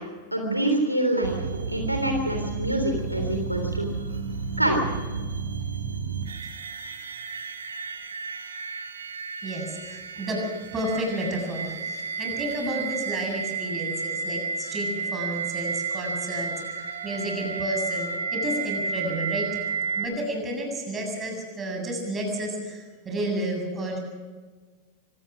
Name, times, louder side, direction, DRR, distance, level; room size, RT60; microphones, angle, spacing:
voice 1, 0.0-1.4 1.7-3.9 4.6-4.8, right 1 dB, 90° right, 3 dB, 3.4 m, -26 dB
sound 1, 1.2-20.1, right 5 dB, 70° right, 2.3 m, -32 dB
voice 2, 9.4-19.6 19.9-24.0, right 1 dB, 20° right, 2 dB, 7.6 m, -31 dB
25.0 x 18.5 x 6.3 m, 1.4 s
figure-of-eight pair, 90°, 0 cm